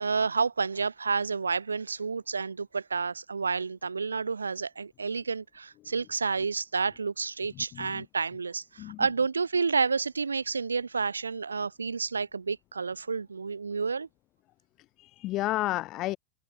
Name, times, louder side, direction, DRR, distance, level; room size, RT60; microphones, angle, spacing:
voice 1, 0.0-14.1, right 5 dB, 75° right, 2.8 m, -30 dB
voice 2, 7.6-8.0 8.8-9.1 15.0-16.2, left 17 dB, 35° left, 4.4 m, -32 dB
figure-of-eight pair, 90°, 0 cm